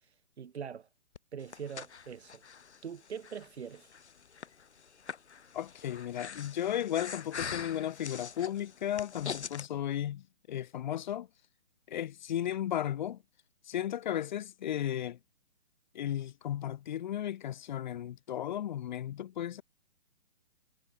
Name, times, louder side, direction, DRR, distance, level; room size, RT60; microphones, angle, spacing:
voice 1, 0.4-0.9 1.3-2.4 2.8-3.9, right 7 dB, 70° right, 1.8 m, -42 dB
Breathing, 1.2-9.7, left 6 dB, 75° left, 2.3 m, -44 dB
voice 2, 5.5-11.3 11.9-13.2 13.7-15.2 15.9-19.6, left 11 dB, 45° left, 0.8 m, -35 dB
hypercardioid pair, 140°, 34 cm